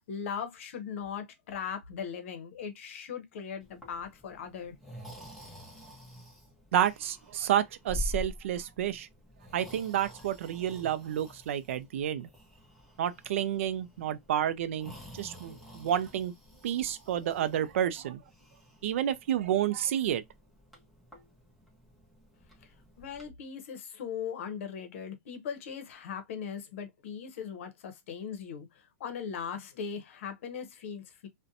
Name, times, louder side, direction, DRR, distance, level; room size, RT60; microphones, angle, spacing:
voice 1, 0.0-4.7 23.0-31.3, left 7 dB, 65° left, 0.7 m, -39 dB
Breathing, 3.6-23.3, left 1 dB, ahead, 0.8 m, -47 dB
voice 2, 6.7-9.1 9.5-12.3 13.0-16.3 16.6-18.2 18.8-20.2, right 10 dB, 65° right, 0.3 m, -30 dB
2.5 x 2.1 x 2.5 m
hypercardioid pair, 145°, 7 cm